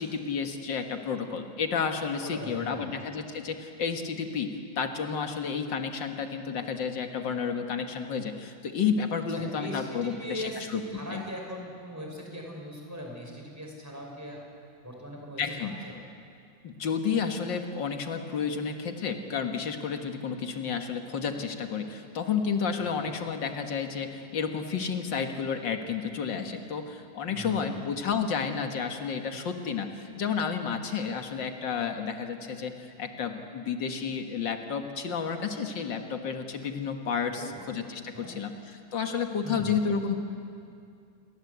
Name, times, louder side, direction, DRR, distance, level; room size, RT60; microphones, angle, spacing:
voice 1, 0.0-10.8 11.1-11.2 15.4-15.8 16.6-40.2, left 6 dB, 90° left, 5 dB, 2.3 m, -31 dB
voice 2, 2.2-2.9 9.3-14.4 14.8-15.9 23.1-23.2 27.3-27.8 37.3-37.6 38.1-38.4 39.4-39.8, equal, 10° right, -1 dB, 5.4 m, -40 dB
28.5 x 21.5 x 8.2 m, 2.4 s
omnidirectional pair, 1.9 m